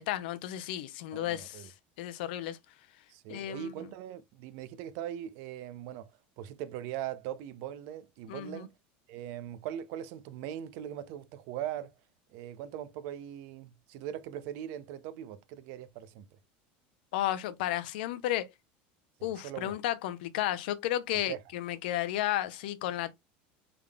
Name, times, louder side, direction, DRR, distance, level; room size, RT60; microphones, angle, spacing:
voice 1, 0.0-1.7 2.0-2.6 3.3-3.7 8.3-8.6 17.1-18.5 19.2-23.1, left 13 dB, 80° left, 0.5 m, -33 dB
voice 2, 1.1-1.7 3.1-6.1 6.4-8.7 9.1-11.9 12.3-16.3 19.2-19.8 21.3-21.4, right 11 dB, 55° right, 0.5 m, -40 dB
3.7 x 3.4 x 2.2 m
cardioid pair, 165°, 5 cm